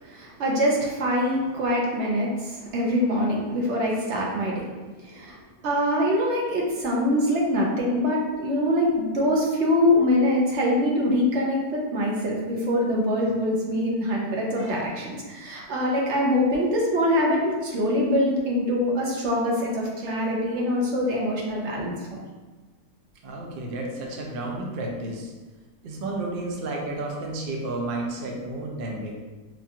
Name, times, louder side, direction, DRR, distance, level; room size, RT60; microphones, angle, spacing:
voice 1, 0.0-4.7 5.0-5.4 5.6-22.2, left 1 dB, 55° right, -2 dB, 0.9 m, -24 dB
voice 2, 23.2-25.3 25.8-29.1, right 2 dB, 75° right, -1 dB, 0.5 m, -31 dB
4.6 x 2.4 x 2.8 m, 1.3 s
omnidirectional pair, 1.6 m